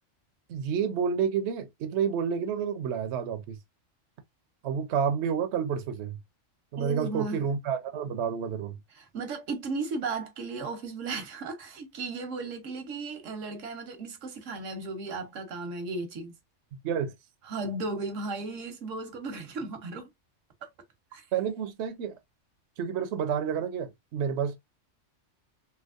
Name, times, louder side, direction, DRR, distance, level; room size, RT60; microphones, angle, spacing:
voice 1, 0.5-3.6 4.6-6.2 6.7-8.8 16.8-17.1 21.3-22.2 22.8-24.6, right 7 dB, 70° right, 0.8 m, -29 dB
voice 2, 6.8-7.4 9.0-16.3 17.5-20.1 21.1-21.2, right 3 dB, 85° right, 1.2 m, -35 dB
3.3 x 2.8 x 2.4 m
omnidirectional pair, 1.3 m